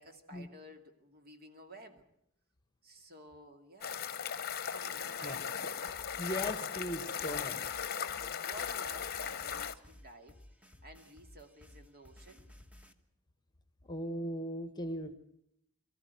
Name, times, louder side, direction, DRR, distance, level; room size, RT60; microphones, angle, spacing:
voice 1, 0.0-2.0 2.8-4.0 4.4-5.9 8.3-12.5, right 1 dB, 45° right, 5 dB, 2.4 m, -53 dB
sound 1, 3.8-9.7, left 7 dB, 45° left, 0.9 m, -38 dB
sound 2, 5.9-12.9, left 1 dB, 5° right, 1.2 m, -56 dB
voice 2, 6.2-7.6 13.9-15.2, equal, 20° left, 9 dB, 1.3 m, -38 dB
23.5 x 14.5 x 9.4 m, 0.77 s
head